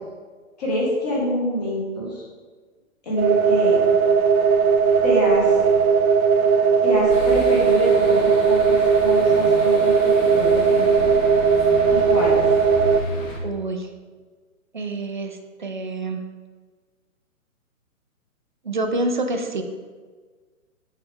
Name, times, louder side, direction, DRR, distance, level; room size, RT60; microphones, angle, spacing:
voice 1, 0.6-2.2 3.0-3.8 5.0-5.5 6.8-11.2 11.9-12.4, left 1 dB, 30° left, -4 dB, 1.8 m, -26 dB
sound 1, 3.2-13.0, right 6 dB, 80° right, 0.7 m, -18 dB
sound 2, 7.1-13.4, left 2 dB, 65° left, 1.7 m, -33 dB
voice 2, 13.4-13.9 14.7-16.2 18.6-19.6, right 2 dB, 35° right, 5 dB, 0.5 m, -27 dB
7.8 x 5.7 x 3.5 m, 1.5 s
hypercardioid pair, 175°, 42 cm